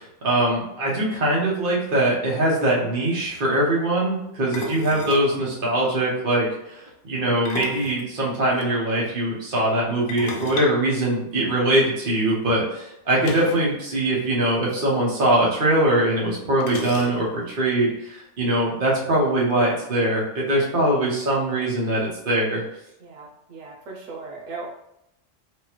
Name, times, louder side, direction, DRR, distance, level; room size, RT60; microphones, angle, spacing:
voice 1, 0.0-22.6, right 1 dB, 45° right, -5 dB, 1.2 m, -22 dB
sound 1, 2.2-2.3 2.5-2.7 4.5-5.3 7.3-8.7 10.1-11.7 13.2-13.7 14.0-14.1 14.4-14.6 15.6-15.7 16.6-17.5, left 3 dB, 70° left, 0.8 m, -35 dB
voice 2, 23.0-24.7, right 3 dB, 85° right, -2 dB, 1.2 m, -38 dB
4.8 x 2.2 x 3.0 m, 0.82 s
omnidirectional pair, 1.3 m